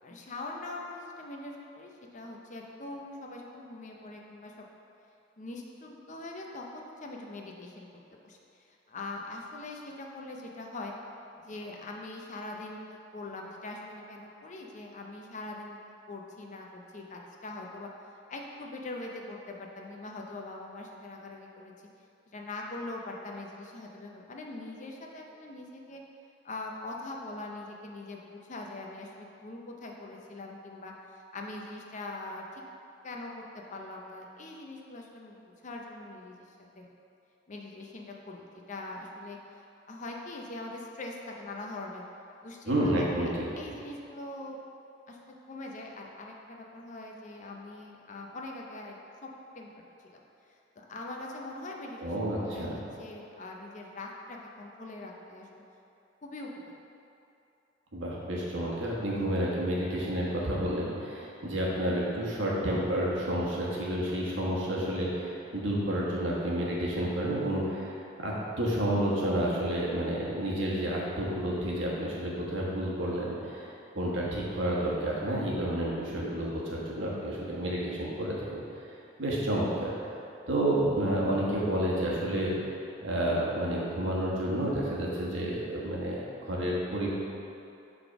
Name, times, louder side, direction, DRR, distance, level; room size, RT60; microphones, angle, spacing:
voice 1, 0.0-4.5 5.4-7.9 8.2-10.9 11.4-15.8 16.1-17.9 18.3-21.7 22.3-26.0 26.4-32.6 33.0-33.4 33.7-35.4 35.6-36.4 36.8-36.9 37.5-39.4 39.9-42.0 42.4-43.3 43.5-44.6 45.1-48.9 49.2-49.7 50.0-50.2 50.8-55.6 56.2-56.5, left 2 dB, 40° left, 0 dB, 0.6 m, -42 dB
voice 2, 42.7-43.4 52.0-52.8 57.9-78.6 79.2-80.1 80.5-82.5 83.0-87.1, right 1 dB, 75° right, -5 dB, 1.3 m, -30 dB
5.2 x 4.0 x 5.8 m, 2.7 s
head